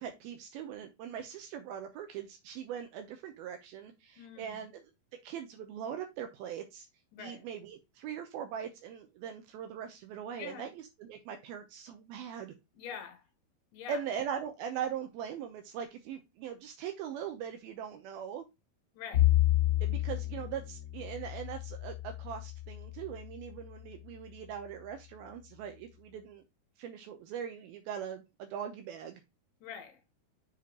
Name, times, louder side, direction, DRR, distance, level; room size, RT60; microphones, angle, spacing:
voice 1, 0.0-4.7 5.2-6.9 7.2-12.5 13.9-18.4 19.8-26.4 26.8-29.2, right 8 dB, 80° right, 2.6 m, -41 dB
voice 2, 4.2-4.7 7.1-7.5 10.4-10.7 12.7-13.3 13.7-14.0 18.9-19.3 29.6-30.0, left 8 dB, 65° left, 2.6 m, -45 dB
Bowed string instrument, 19.1-23.5, left 15 dB, 40° left, 2.5 m, -30 dB
7.0 x 5.0 x 2.8 m
omnidirectional pair, 4.5 m